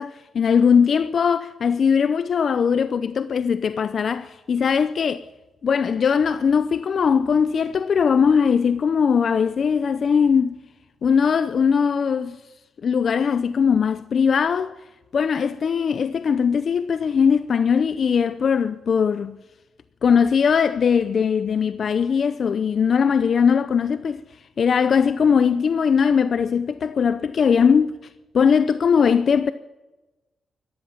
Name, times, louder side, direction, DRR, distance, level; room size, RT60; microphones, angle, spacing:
voice 1, 0.0-5.2 5.6-10.6 11.0-12.4 12.8-14.7 15.1-19.4 20.0-24.2 24.6-27.9 28.3-29.5, left 6 dB, 55° left, 0.6 m, -20 dB
14.0 x 12.5 x 7.6 m
cardioid pair, 105°, 0 cm